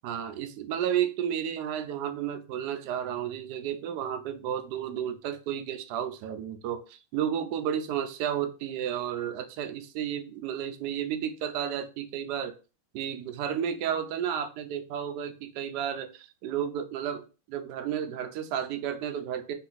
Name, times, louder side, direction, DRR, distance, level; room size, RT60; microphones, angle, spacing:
voice 1, 0.0-12.5 12.9-19.5, right 9 dB, 85° right, 6 dB, 0.9 m, -32 dB
4.1 x 2.5 x 3.9 m, 0.34 s
omnidirectional pair, 2.4 m